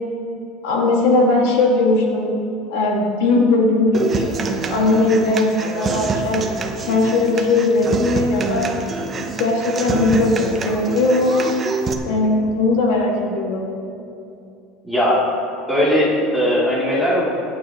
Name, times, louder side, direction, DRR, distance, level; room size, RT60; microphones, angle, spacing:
voice 1, 0.6-2.3 2.7-4.2 4.7-6.4 6.9-8.7 9.1-11.5 12.1-13.7, left 2 dB, 80° left, -1 dB, 2.1 m, -18 dB
Human voice / Acoustic guitar, 3.9-11.9, right 4 dB, 20° right, 0.9 m, -26 dB
voice 2, 14.8-15.2 15.7-17.3, equal, 5° left, -8 dB, 3.1 m, -18 dB
22.0 x 9.1 x 3.1 m, 2.7 s
cardioid pair, 155°, 0 cm